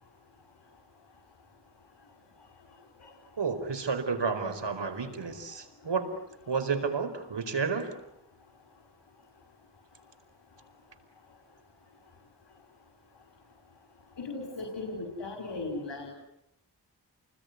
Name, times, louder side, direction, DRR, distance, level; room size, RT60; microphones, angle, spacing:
voice 1, 3.4-6.1 6.5-7.9, right 5 dB, 80° right, 9 dB, 4.5 m, -31 dB
voice 2, 14.2-16.1, left 3 dB, 85° left, 3 dB, 5.0 m, -37 dB
29.5 x 20.5 x 9.6 m, 0.81 s
cardioid pair, 55°, 42 cm